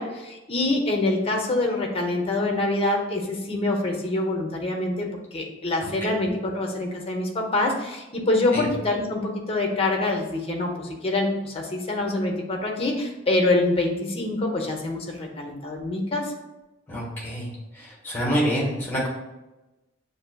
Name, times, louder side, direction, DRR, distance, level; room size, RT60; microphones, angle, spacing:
voice 1, 0.0-16.3, left 2 dB, 30° left, 1 dB, 0.7 m, -25 dB
voice 2, 16.9-19.1, equal, 10° left, -5 dB, 1.4 m, -27 dB
6.9 x 2.6 x 2.2 m, 1.0 s
head